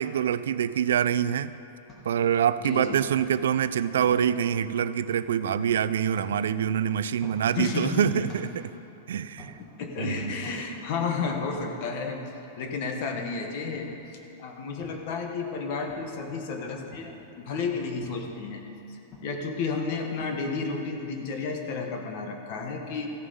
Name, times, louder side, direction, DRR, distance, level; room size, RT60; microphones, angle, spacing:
voice 1, 0.0-1.5 2.0-8.7 9.1-9.5 10.0-10.3, right 9 dB, 80° right, 15 dB, 0.3 m, -25 dB
sound 1, 1.0-20.9, equal, 15° left, 1.4 m, -52 dB
voice 2, 2.6-3.0 7.5-8.3 9.8-13.9 14.4-18.6 18.9-23.1, left 4 dB, 35° left, 3 dB, 1.1 m, -32 dB
14.5 x 7.0 x 5.4 m, 2.8 s
supercardioid pair, 180°, 0 cm